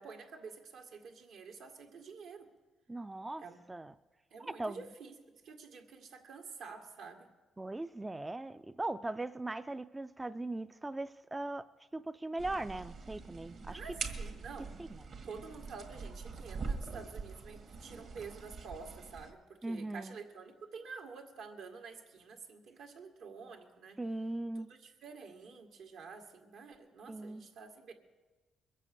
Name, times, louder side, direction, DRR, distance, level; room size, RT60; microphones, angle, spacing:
voice 1, 0.0-2.5 3.4-3.6 4.3-5.1 5.4-7.3 13.7-14.8 15.2-24.0 24.6-27.9, right 5 dB, 80° right, 3 dB, 1.9 m, -49 dB
voice 2, 2.9-3.9 4.4-4.8 7.6-11.7 11.9-13.8 14.8-14.9 19.6-20.2 24.0-24.7 27.1-27.4, right 2 dB, 15° right, 11 dB, 0.4 m, -39 dB
sound 1, 12.4-19.3, right 4 dB, 60° right, 1.7 m, -43 dB
22.0 x 7.6 x 6.8 m, 1.2 s
cardioid pair, 90°, 0 cm